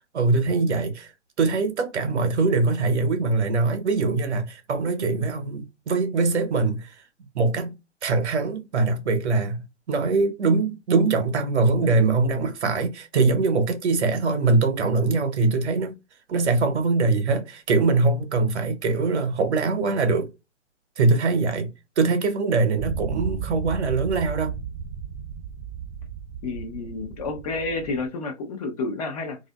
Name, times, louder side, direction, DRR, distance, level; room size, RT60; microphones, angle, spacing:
voice 1, 0.1-1.1 1.4-6.9 7.3-15.9 16.3-20.3 21.0-24.6, right 3 dB, 70° right, 0.9 m, -22 dB
sound 1, 22.8-28.1, right 7 dB, 10° right, 0.6 m, -34 dB
voice 2, 26.4-29.4, left 3 dB, 35° left, 0.6 m, -30 dB
2.6 x 2.4 x 2.2 m
figure-of-eight pair, 125°, 35 cm